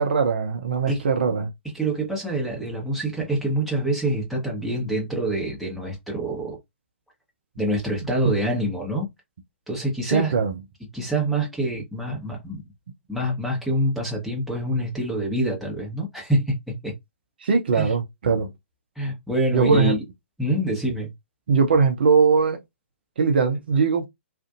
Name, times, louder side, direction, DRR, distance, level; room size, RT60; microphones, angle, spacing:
voice 1, 0.0-1.5 8.3-8.4 10.1-10.5 17.4-18.5 19.5-19.9 21.5-22.6 23.2-24.1, right 5 dB, 55° right, 0.6 m, -20 dB
voice 2, 1.7-6.6 7.6-9.1 9.7-10.3 10.9-12.6 13.1-16.9 17.7-17.9 19.0-20.0 20.4-21.1, right 1 dB, ahead, 1.0 m, -26 dB
2.5 x 2.4 x 2.4 m
figure-of-eight pair, 120°, 7 cm